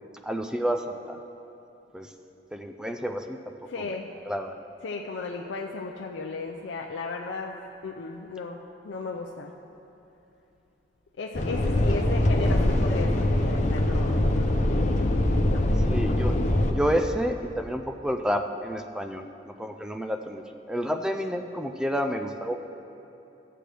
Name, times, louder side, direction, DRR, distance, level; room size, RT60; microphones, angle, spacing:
voice 1, 0.2-1.2 1.9-2.1 2.5-3.4 3.8-3.9 4.3-4.5 15.9-22.6, equal, 5° right, 6 dB, 0.3 m, -30 dB
voice 2, 3.7-4.1 4.8-8.6 8.8-9.5 11.2-14.5 15.4-15.6, left 3 dB, 80° left, 0 dB, 0.5 m, -35 dB
sound 1, 11.3-16.7, left 1 dB, 40° left, 0.7 m, -23 dB
14.5 x 7.6 x 3.3 m, 2.8 s
head